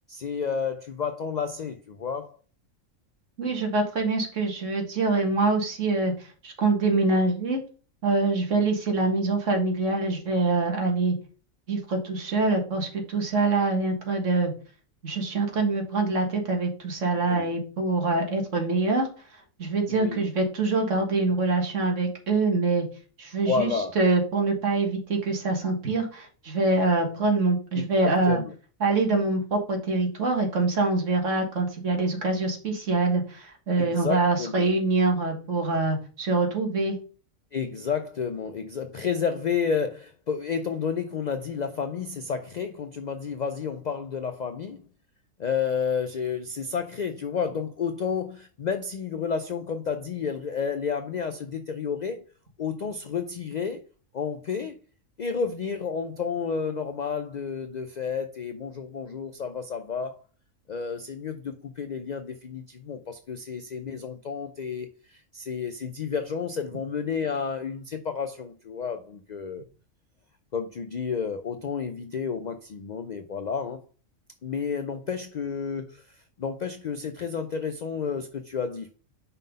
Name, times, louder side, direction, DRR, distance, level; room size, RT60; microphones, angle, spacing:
voice 1, 0.1-2.4 17.2-17.5 19.9-20.3 23.4-24.0 27.7-28.5 33.8-34.7 37.5-44.8 45.4-52.2 52.6-53.8 54.1-54.8 55.2-60.2 60.7-69.6 70.5-73.8 74.4-78.9, left 6 dB, 70° left, 0.4 m, -31 dB
voice 2, 3.4-7.6 8.0-11.2 11.7-14.5 15.0-19.1 19.6-22.9 23.2-23.7 24.0-28.4 28.8-37.0, right 3 dB, 65° right, 1.9 m, -25 dB
5.5 x 3.8 x 5.2 m
omnidirectional pair, 1.4 m